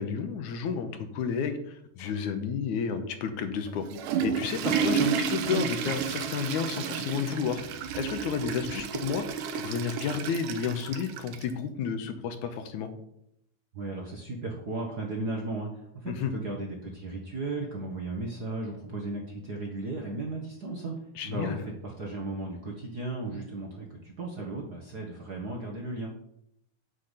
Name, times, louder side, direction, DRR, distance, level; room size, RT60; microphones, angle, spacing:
voice 1, 0.0-3.8 4.2-7.6 8.0-9.2 9.5-12.9 16.1-16.3 21.2-21.6, left 6 dB, 70° left, 8 dB, 2.2 m, -31 dB
Water / Toilet flush, 3.7-11.5, right 7 dB, 75° right, 2.4 m, -31 dB
voice 2, 13.7-21.0 21.2-26.1, right 2 dB, 60° right, 0 dB, 1.0 m, -35 dB
8.7 x 5.8 x 8.1 m, 0.74 s
omnidirectional pair, 4.0 m